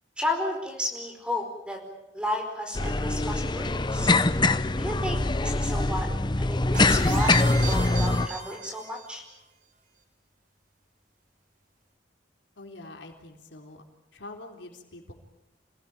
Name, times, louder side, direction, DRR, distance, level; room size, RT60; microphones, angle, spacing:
voice 1, 0.2-1.8 2.1-4.1 4.8-6.1 6.4-7.4 7.7-9.2, left 1 dB, 5° right, 3 dB, 4.8 m, -32 dB
sound 1, 2.8-8.3, left 2 dB, 25° left, 0.8 m, -23 dB
sound 2, 6.7-9.2, right 5 dB, 50° right, 4.5 m, -37 dB
voice 2, 12.6-13.8 14.1-15.1, left 2 dB, 85° left, 3 dB, 3.9 m, -44 dB
27.5 x 17.5 x 9.1 m, 0.97 s
head